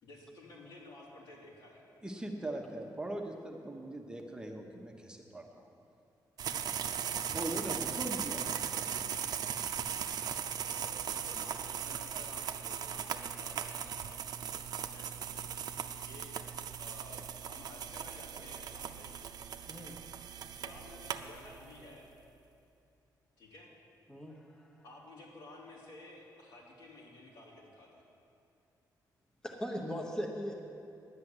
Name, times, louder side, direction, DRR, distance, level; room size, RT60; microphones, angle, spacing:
voice 1, 0.0-1.9 6.4-6.7 10.6-15.4 16.0-16.3 16.8-19.2 20.2-22.0 23.4-23.7 24.8-28.0, left 2 dB, 75° left, -4 dB, 3.2 m, -53 dB
voice 2, 2.0-5.7 7.3-8.5, right 1 dB, 10° right, 1 dB, 1.0 m, -40 dB
sound 1, 6.4-21.8, right 8 dB, 65° right, 0.6 m, -38 dB
voice 3, 19.7-20.0 24.1-24.7 29.4-30.7, equal, 10° left, 1 dB, 1.1 m, -39 dB
11.0 x 8.6 x 8.0 m, 2.6 s
cardioid pair, 130°, 7 cm